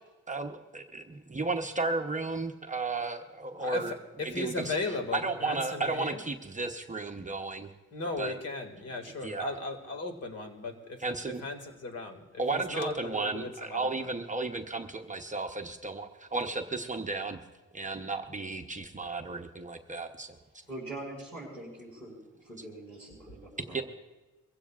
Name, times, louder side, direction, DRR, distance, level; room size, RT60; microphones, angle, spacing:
voice 1, 0.3-3.9 4.2-4.7 5.1-7.7 8.2-8.3 9.2-9.6 11.0-11.4 12.4-17.4 17.7-20.4 23.7-23.8, right 3 dB, 25° right, 4 dB, 0.8 m, -34 dB
voice 2, 3.6-6.2 7.9-14.1, left 3 dB, 50° left, 5 dB, 2.1 m, -37 dB
voice 3, 20.7-23.8, right 2 dB, 5° left, -7 dB, 5.7 m, -43 dB
23.0 x 15.5 x 2.4 m, 1.1 s
cardioid pair, 95°, 31 cm